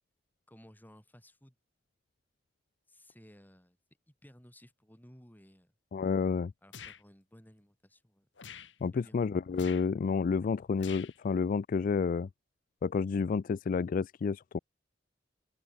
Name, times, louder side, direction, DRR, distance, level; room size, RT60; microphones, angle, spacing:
voice 1, 0.5-1.6 2.9-3.8 4.1-5.7 6.6-8.3 8.9-9.2, equal, 10° left, 7.6 m, -57 dB
voice 2, 5.9-6.5 8.8-12.3 12.8-14.6, left 5 dB, 50° left, 0.3 m, -30 dB
sound 1, 6.7-7.0 8.4-8.7 9.5-9.9 10.8-11.2, left 7 dB, 90° left, 1.5 m, -46 dB
open air
head